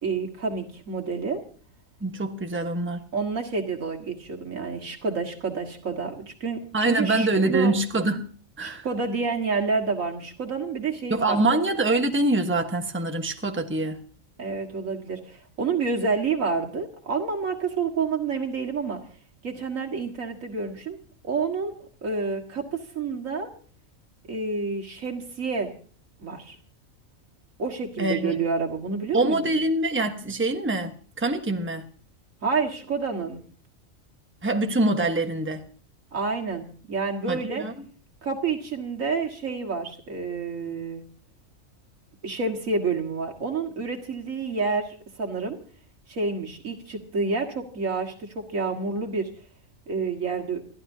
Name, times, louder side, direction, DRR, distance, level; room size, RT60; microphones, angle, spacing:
voice 1, 0.0-1.4 3.1-7.7 8.6-11.2 14.4-19.0 19.4-21.0 21.2-23.5 24.3-25.7 26.2-26.6 27.6-29.6 32.4-33.4 36.1-37.6 38.2-41.0 42.2-45.6 46.1-49.3 49.9-50.6, right 4 dB, 70° right, 1 dB, 2.2 m, -29 dB
voice 2, 2.0-3.0 6.7-8.2 8.6-8.9 11.1-14.0 28.0-28.4 29.1-31.8 34.4-35.6 37.3-37.7, right 2 dB, 10° right, 5 dB, 1.2 m, -24 dB
28.0 x 12.0 x 2.7 m, 0.44 s
omnidirectional pair, 1.4 m